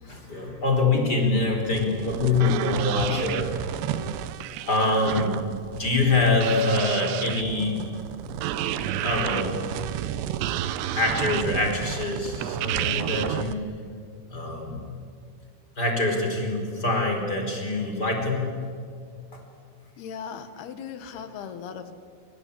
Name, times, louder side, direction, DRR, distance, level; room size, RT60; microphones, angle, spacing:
voice 1, 0.0-3.7 4.6-5.4 5.8-7.8 8.7-9.6 10.9-13.6 14.3-14.8 15.8-18.5 19.3-19.4, left 3 dB, 20° left, 2 dB, 4.5 m, -25 dB
sound 1, 1.7-13.5, right 11 dB, 75° right, 2.8 m, -31 dB
voice 2, 20.0-21.9, left 7 dB, 65° left, 10 dB, 3.1 m, -38 dB
27.5 x 25.0 x 8.6 m, 2.3 s
omnidirectional pair, 5.6 m